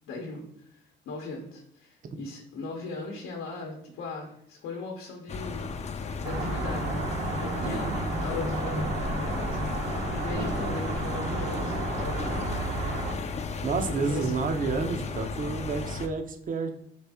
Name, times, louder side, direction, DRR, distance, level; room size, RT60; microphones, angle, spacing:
voice 1, 0.1-0.5 0.7-5.6 6.2-7.0 7.4-9.7 10.1-12.6 13.9-14.3, left 3 dB, 90° left, -1 dB, 0.8 m, -38 dB
sound 1, 5.3-16.1, left 4 dB, 35° left, 0.4 m, -35 dB
sound 2, 6.2-13.1, right 2 dB, 65° right, 0.9 m, -32 dB
voice 2, 7.6-8.1 10.3-10.9 13.6-16.7, right 4 dB, 45° right, 6 dB, 0.6 m, -30 dB
4.1 x 2.6 x 3.4 m, 0.74 s
cardioid pair, 90°, 20 cm